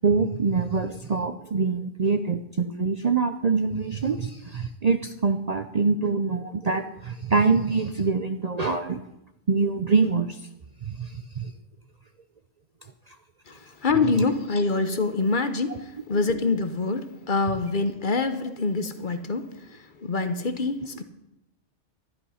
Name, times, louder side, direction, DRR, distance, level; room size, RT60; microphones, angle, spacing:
voice 1, 0.0-9.0 9.5-10.4 10.8-11.5 15.7-15.8, right 4 dB, 45° right, 8 dB, 0.6 m, -25 dB
voice 2, 13.5-21.0, left 3 dB, 45° left, 9 dB, 1.0 m, -26 dB
12.5 x 11.0 x 5.6 m, 0.87 s
omnidirectional pair, 1.2 m